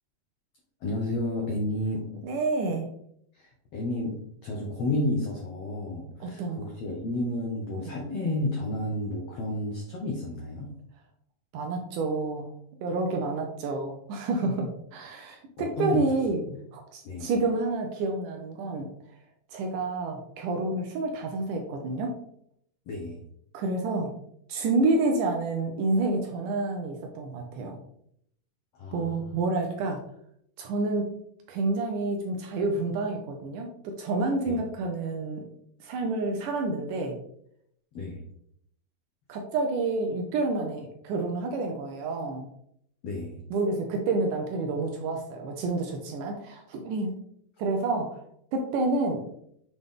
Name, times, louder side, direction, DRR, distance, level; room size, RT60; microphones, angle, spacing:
voice 1, 0.8-2.0 3.3-4.2 4.4-10.7 15.6-16.0 16.5-16.6 17.0-17.3 22.9-23.2 28.7-29.1 34.5-34.6 37.9-38.2 43.0-43.4, left 1 dB, 85° left, -1 dB, 1.3 m, -31 dB
voice 2, 2.2-2.9 6.2-6.6 7.8-7.9 11.5-12.5 12.8-16.4 16.7-18.9 19.5-22.2 23.5-24.1 24.5-27.8 28.9-30.0 30.6-31.2 31.5-35.4 35.8-37.1 39.3-42.5 43.5-47.1 47.6-48.2 48.5-49.2, right 3 dB, 75° right, 3 dB, 2.0 m, -29 dB
7.0 x 3.9 x 3.6 m, 0.70 s
omnidirectional pair, 4.2 m